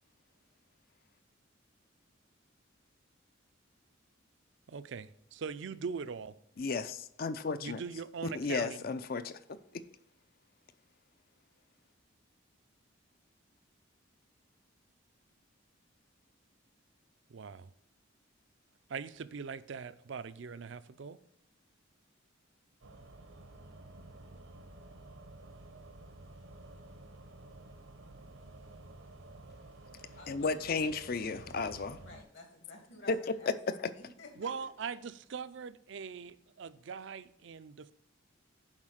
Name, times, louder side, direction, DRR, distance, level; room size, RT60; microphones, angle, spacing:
voice 1, 4.7-6.4 7.6-8.8 17.3-17.7 18.9-21.2 34.4-37.9, right 5 dB, 65° right, 0.4 m, -41 dB
voice 2, 6.6-7.8 8.3-9.4 9.7-9.8 30.3-32.0 33.1-33.3, left 4 dB, 50° left, 0.5 m, -34 dB
sound 1, 22.8-32.2, right 2 dB, 80° right, 0.9 m, -52 dB
voice 3, 30.2-30.7 32.0-34.5, left 2 dB, 65° left, 2.2 m, -52 dB
7.3 x 4.9 x 6.3 m
head